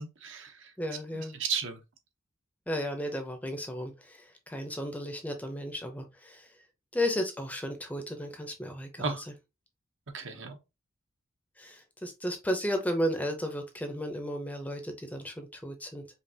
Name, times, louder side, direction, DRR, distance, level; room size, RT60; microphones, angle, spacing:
voice 1, 0.0-0.7 1.1-1.8 9.0-9.2 10.1-10.6, right 5 dB, 60° right, 0.9 m, -35 dB
voice 2, 0.8-1.4 2.7-6.5 6.9-9.3 11.6-16.1, equal, 5° left, 0.6 m, -34 dB
5.3 x 2.4 x 2.7 m
head